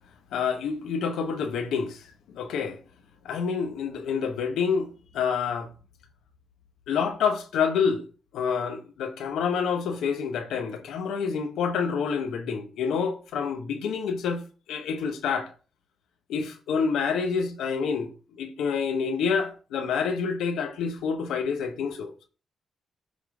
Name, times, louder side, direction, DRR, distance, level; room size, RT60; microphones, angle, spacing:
voice 1, 0.3-2.0 2.3-2.8 3.2-4.9 5.1-5.7 6.9-8.0 8.3-14.4 14.7-15.5 16.3-18.1 18.4-22.3, left 6 dB, 90° left, 0.9 m, -27 dB
8.2 x 3.7 x 4.8 m
cardioid pair, 75°, 0 cm